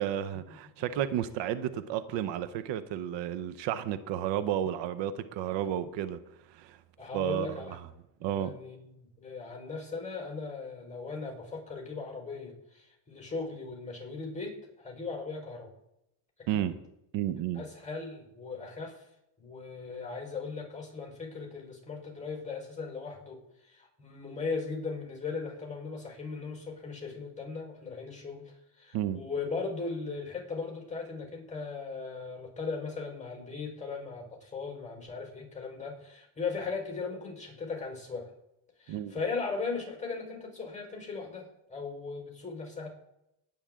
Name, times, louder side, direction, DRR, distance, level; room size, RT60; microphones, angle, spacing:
voice 1, 0.0-6.2 6.5-6.8 7.1-7.6 8.2-8.6 16.5-16.8 17.1-17.6 28.9-29.2 38.9-39.1, right 11 dB, 80° right, 0.9 m, -32 dB
voice 2, 7.0-7.8 8.2-15.7 16.4-16.7 17.5-19.1 19.4-38.3 38.8-42.9, left 4 dB, 15° left, 4.6 m, -38 dB
19.0 x 8.9 x 3.7 m
cardioid pair, 105°, 43 cm